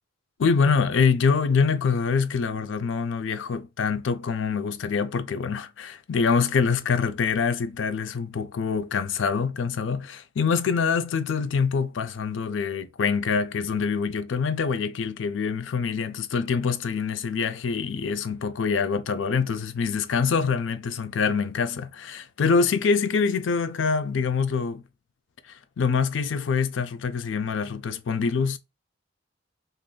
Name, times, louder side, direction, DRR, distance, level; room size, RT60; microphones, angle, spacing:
voice 1, 0.4-24.8 25.8-28.6, left 5 dB, 80° left, 0.4 m, -25 dB
3.7 x 2.5 x 2.2 m
head